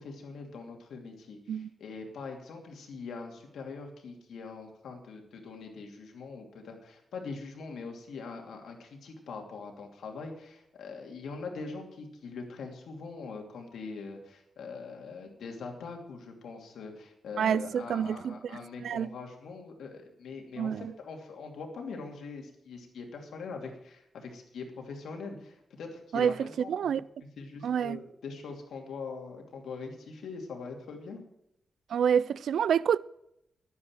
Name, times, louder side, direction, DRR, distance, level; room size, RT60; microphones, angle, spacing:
voice 1, 0.0-27.0 27.4-31.2, left 4 dB, 85° left, 2.7 m, -42 dB
voice 2, 17.4-18.4 18.8-19.1 20.6-20.9 26.1-27.0 27.6-28.0 31.9-33.0, right 8 dB, 80° right, 0.4 m, -28 dB
11.0 x 9.7 x 7.5 m
wide cardioid pair, 120°, 0 cm